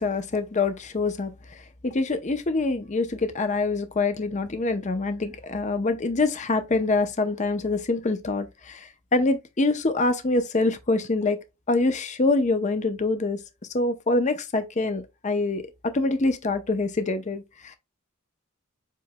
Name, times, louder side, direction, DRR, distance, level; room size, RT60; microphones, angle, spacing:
voice 1, 0.0-11.4 11.7-13.4 13.7-17.8, left 3 dB, 35° left, 0.6 m, -25 dB
7.5 x 3.0 x 2.2 m
head